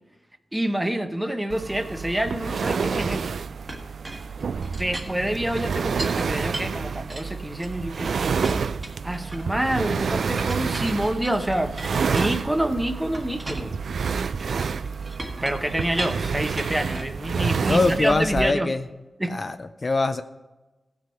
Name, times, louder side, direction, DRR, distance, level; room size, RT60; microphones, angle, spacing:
voice 1, 0.5-3.3 4.7-8.1 9.0-13.8 15.4-18.7 19.2-19.4, right 1 dB, 10° right, 7 dB, 0.8 m, -27 dB
sound 1, 1.5-18.5, right 5 dB, 85° right, 0.3 m, -29 dB
Chink clink, 3.7-6.2 6.5-8.0 8.4-9.7 10.4-12.7 13.1-17.2 17.7-18.8, right 1 dB, 25° right, 1.5 m, -38 dB
voice 2, 17.7-18.8 19.3-20.2, left 3 dB, 40° left, 9 dB, 0.5 m, -23 dB
16.5 x 6.3 x 4.3 m, 1.1 s
wide cardioid pair, 115°, 0 cm